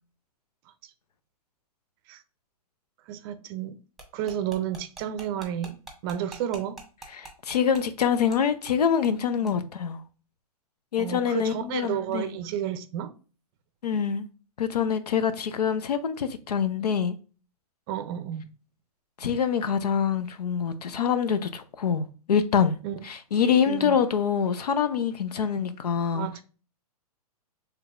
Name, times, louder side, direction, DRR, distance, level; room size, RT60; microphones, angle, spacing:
voice 1, 3.1-3.8 4.1-5.8 6.0-6.8 9.4-9.6 11.0-13.1 17.9-18.5 22.8-23.0 23.7-24.0 26.1-26.4, right 10 dB, 35° right, 0.5 m, -31 dB
sound 1, 4.0-8.4 8.7-8.8 9.0-9.2 9.5-9.6, right 2 dB, ahead, 1.0 m, -44 dB
voice 2, 7.1-10.0 10.9-12.4 13.8-14.3 14.6-17.2 19.2-22.8 23.0-26.3, left 7 dB, 85° left, 0.6 m, -25 dB
4.6 x 3.4 x 2.4 m
hypercardioid pair, 130°, 20 cm